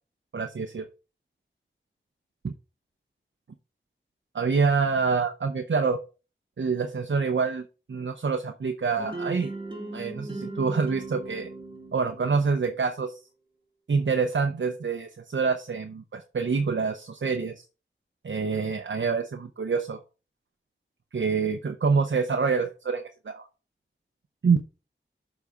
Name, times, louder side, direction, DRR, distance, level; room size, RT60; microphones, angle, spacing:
voice 1, 0.3-0.9 2.4-2.5 4.3-6.0 6.6-7.6 7.9-9.5 9.9-11.5 11.9-13.2 13.9-17.6 18.2-20.0 21.1-23.5 24.4-24.6, right 5 dB, 65° right, 6 dB, 0.7 m, -26 dB
sound 1, 9.0-12.9, right 2 dB, 25° right, 1.7 m, -38 dB
7.1 x 4.1 x 4.9 m, 0.32 s
wide cardioid pair, 50°, 21 cm